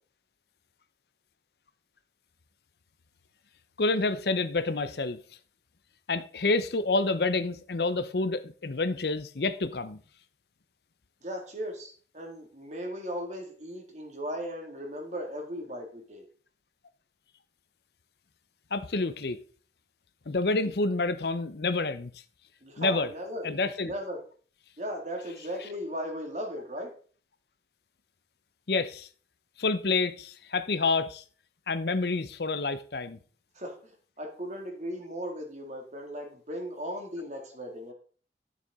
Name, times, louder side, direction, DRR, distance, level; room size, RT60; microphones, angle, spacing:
voice 1, 3.8-5.2 6.1-10.0 18.7-19.4 20.3-22.1 22.8-23.1 23.4-23.9 28.7-29.1 29.6-31.2 31.7-33.2, left 3 dB, 65° left, 0.7 m, -28 dB
voice 2, 11.2-16.2 22.6-23.5 23.8-24.2 24.8-26.9 33.5-37.9, equal, 40° right, 2.2 m, -37 dB
12.0 x 6.8 x 3.6 m
head